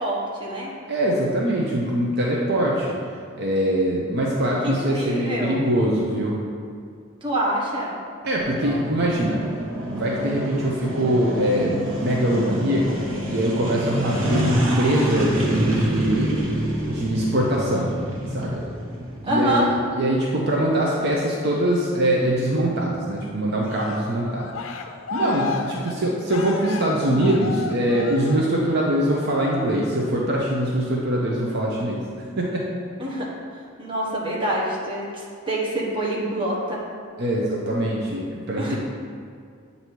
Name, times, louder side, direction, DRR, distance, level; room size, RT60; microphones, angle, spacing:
voice 1, 0.0-0.7 4.6-5.7 7.2-7.9 13.9-14.3 19.2-19.7 25.2-25.6 33.0-33.3 33.8-36.8 38.6-38.8, right 1 dB, 25° right, -5 dB, 1.1 m, -26 dB
voice 2, 0.9-2.9 3.4-6.4 8.2-9.4 9.9-13.0 13.3-16.3 16.8-17.9 18.3-18.6 19.2-24.5 25.1-32.0 32.4-32.7 37.2-38.8, right 1 dB, 55° right, -3 dB, 0.6 m, -23 dB
sound 1, 8.4-19.7, equal, 85° right, 1.0 m, -27 dB
Cheering, 23.6-28.9 29.3-29.7, left 5 dB, 85° left, 0.4 m, -34 dB
8.1 x 2.7 x 4.5 m, 2.2 s
head